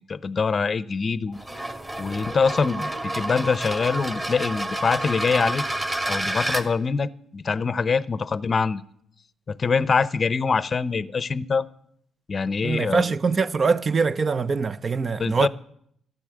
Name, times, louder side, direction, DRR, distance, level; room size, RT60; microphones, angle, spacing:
voice 1, 0.0-1.4 2.0-8.8 9.5-11.7 12.3-13.0 15.2-15.5, left 5 dB, 40° left, 0.6 m, -24 dB
sound 1, 1.3-6.6, right 1 dB, 20° right, 1.8 m, -29 dB
voice 2, 12.6-15.5, right 4 dB, 40° right, 0.5 m, -23 dB
14.0 x 9.3 x 7.7 m
cardioid pair, 90°, 0 cm